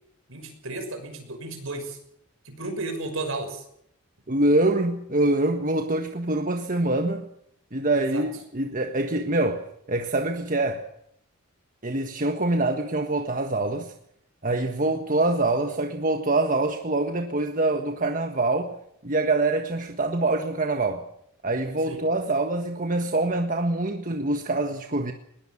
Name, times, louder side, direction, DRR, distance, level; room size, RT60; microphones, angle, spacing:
voice 1, 0.3-2.0 2.4-3.6 7.9-8.2 21.9-22.0, right 2 dB, 60° right, 6.2 m, -33 dB
voice 2, 4.3-7.3 7.7-10.9 11.8-13.9 14.4-18.8 19.0-21.1 21.4-25.1, right 2 dB, 35° right, 1.5 m, -25 dB
20.5 x 20.5 x 7.3 m
head